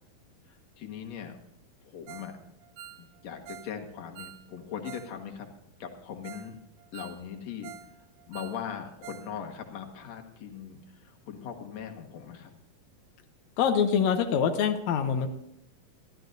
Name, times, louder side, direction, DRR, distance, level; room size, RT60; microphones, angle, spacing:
voice 1, 0.8-1.4 1.8-2.4 3.0-5.5 5.8-6.6 6.9-7.7 8.3-12.5, left 8 dB, 55° left, 3 dB, 2.3 m, -40 dB
Ringtone, 2.1-2.4 2.6-5.1 5.4-5.5 5.9-6.0 6.2-6.5 6.8-7.9 8.2-9.3 9.6-9.7 10.1-10.2, right 10 dB, 85° right, 2.8 m, -47 dB
voice 2, 13.6-15.3, left 7 dB, 80° left, 6 dB, 1.6 m, -25 dB
24.0 x 13.5 x 2.6 m, 0.80 s
omnidirectional pair, 4.3 m